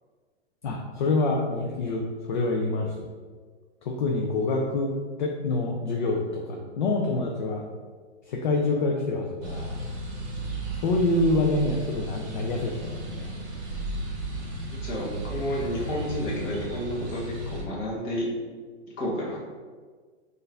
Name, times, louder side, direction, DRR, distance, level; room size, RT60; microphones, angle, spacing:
voice 1, 0.6-3.1 3.9-4.9 5.2-7.6 8.3-9.8 10.8-13.3, left 2 dB, 45° left, 0 dB, 0.4 m, -26 dB
sound 1, 9.4-17.6, right 1 dB, 35° right, 1.3 m, -34 dB
voice 2, 14.7-17.2 17.5-18.3 19.0-19.4, equal, 20° left, -5 dB, 0.8 m, -31 dB
4.5 x 2.5 x 3.3 m, 1.5 s
hypercardioid pair, 160°, 36 cm